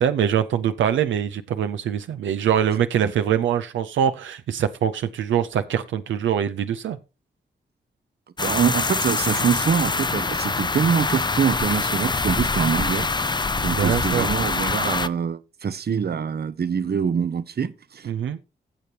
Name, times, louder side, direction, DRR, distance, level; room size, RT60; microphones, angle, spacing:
voice 1, 0.0-7.0 13.7-14.3 18.1-18.4, right 9 dB, 85° right, 0.6 m, -23 dB
sound 1, 8.4-15.1, left 3 dB, 25° left, 0.5 m, -24 dB
voice 2, 8.4-13.1 13.6-18.1, right 7 dB, 55° right, 0.8 m, -24 dB
16.0 x 6.8 x 2.9 m
cardioid pair, 50°, 19 cm